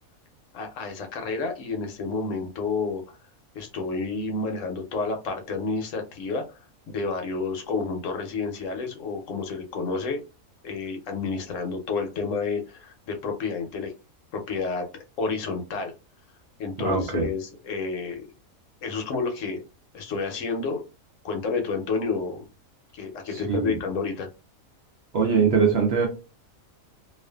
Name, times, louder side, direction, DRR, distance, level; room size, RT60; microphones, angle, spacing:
voice 1, 0.5-3.2 3.5-6.6 6.9-10.2 10.6-13.9 14.3-15.9 16.6-18.3 18.8-19.6 19.9-20.8 21.2-22.5 22.9-24.3, left 4 dB, 70° left, 1.0 m, -30 dB
voice 2, 16.8-17.3 23.3-23.8 25.1-26.1, right 5 dB, 60° right, 0.7 m, -22 dB
2.4 x 2.4 x 2.2 m
omnidirectional pair, 1.5 m